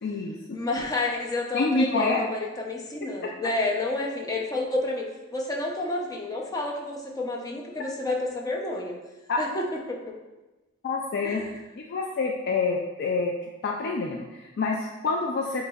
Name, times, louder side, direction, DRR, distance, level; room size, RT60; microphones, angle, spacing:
voice 1, 0.0-0.6 1.5-2.2 9.3-9.4 10.8-11.4 11.8-13.3 13.6-15.6, left 3 dB, 55° left, 0 dB, 0.4 m, -27 dB
voice 2, 0.5-9.0 9.4-10.2 11.2-11.5, left 2 dB, 20° left, -1 dB, 0.6 m, -30 dB
7.6 x 2.9 x 2.4 m, 1.1 s
head